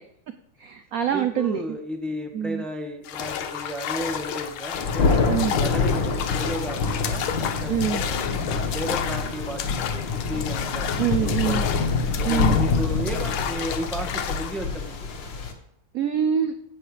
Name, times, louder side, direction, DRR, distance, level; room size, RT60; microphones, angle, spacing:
voice 1, 0.6-1.6 2.3-2.6 5.3-5.6 7.7-8.0 11.0-11.7 12.2-12.6 15.9-16.5, right 8 dB, 65° right, 9 dB, 0.9 m, -25 dB
voice 2, 1.1-5.1 5.3-7.8 8.1-11.8 12.2-15.1, equal, ahead, 4 dB, 1.1 m, -34 dB
sound 1, 3.1-14.6, left 9 dB, 90° left, 1.8 m, -32 dB
Thunder, 4.7-15.5, left 4 dB, 65° left, 2.1 m, -26 dB
15.5 x 7.8 x 4.9 m, 0.75 s
omnidirectional pair, 2.2 m